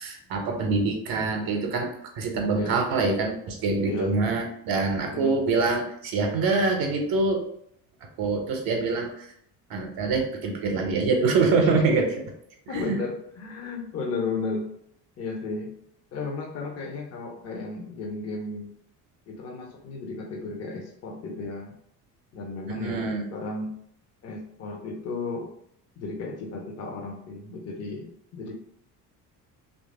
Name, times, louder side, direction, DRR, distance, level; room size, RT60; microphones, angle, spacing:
voice 1, 0.0-7.4 8.2-9.3 9.7-12.1 12.7-13.0 22.8-23.2, right 3 dB, 45° right, 3 dB, 0.8 m, -25 dB
voice 2, 3.8-4.1 5.1-5.4 11.6-12.0 12.7-14.7 15.2-15.7 16.1-18.7 19.3-21.7 22.3-23.8 24.2-25.5 26.0-28.5, left 3 dB, 30° left, 0 dB, 0.8 m, -34 dB
3.2 x 2.6 x 3.6 m, 0.71 s
figure-of-eight pair, 55°, 48 cm